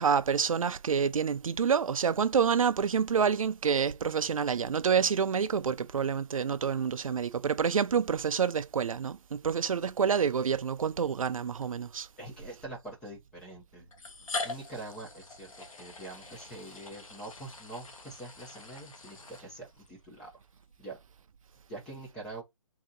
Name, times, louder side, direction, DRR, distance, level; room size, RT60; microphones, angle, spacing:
voice 1, 0.0-12.1, right 7 dB, 70° right, 0.5 m, -28 dB
sound 1, 10.4-10.6 11.6-11.7 12.9-13.0 13.9-19.9, left 3 dB, 70° left, 1.2 m, -42 dB
voice 2, 12.2-13.9 14.4-20.3 20.8-21.0 21.7-22.4, right 2 dB, 5° left, 0.5 m, -44 dB
3.9 x 2.8 x 3.8 m
hypercardioid pair, 165°, 18 cm